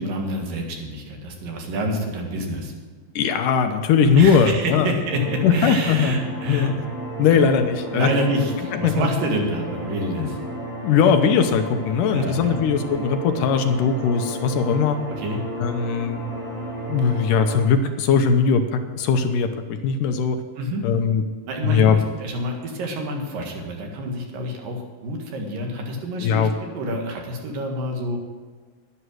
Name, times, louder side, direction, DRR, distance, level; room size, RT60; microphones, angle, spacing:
voice 1, 0.0-2.7 4.2-6.7 7.3-7.4 7.9-10.4 12.1-12.6 15.2-15.4 20.6-20.8 21.5-26.5 26.7-28.2, equal, 75° right, 1 dB, 3.4 m, -28 dB
voice 2, 3.2-4.9 5.4-6.1 6.5-6.7 7.2-8.1 8.7-9.1 10.2-10.3 10.8-15.0 15.6-16.2 16.9-20.4 20.8-21.2 21.6-22.0 26.2-26.5, left 6 dB, 75° left, 7 dB, 2.2 m, -19 dB
sound 1, 5.1-17.6, right 1 dB, 90° right, 6.0 m, -33 dB
11.0 x 11.0 x 6.4 m, 1.5 s
omnidirectional pair, 4.1 m